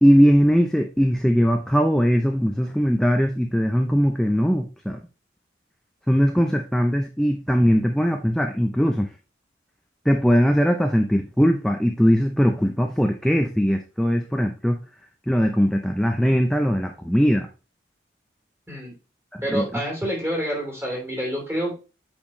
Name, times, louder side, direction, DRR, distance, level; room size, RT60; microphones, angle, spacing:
voice 1, 0.0-5.0 6.1-9.1 10.1-14.8 15.3-17.5 19.3-19.7, equal, 5° left, 3 dB, 0.6 m, -20 dB
voice 2, 19.4-21.7, equal, 15° right, -1 dB, 3.2 m, -27 dB
8.5 x 5.2 x 3.1 m, 0.32 s
head